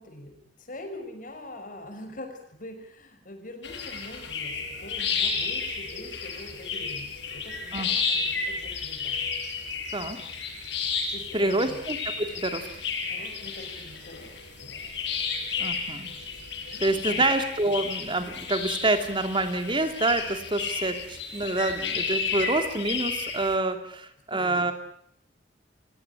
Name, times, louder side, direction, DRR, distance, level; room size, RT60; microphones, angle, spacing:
voice 1, 0.0-9.3 11.1-11.8 13.1-14.2 14.6-14.9 16.6-17.2 24.3-24.6, left 1 dB, 50° left, 6 dB, 5.8 m, -43 dB
sound 1, 3.6-23.6, left 5 dB, 75° left, 7.0 m, -32 dB
voice 2, 11.3-12.7 15.6-16.1 16.8-24.7, right 2 dB, 25° right, 7 dB, 2.7 m, -27 dB
29.0 x 17.0 x 8.3 m, 0.69 s
head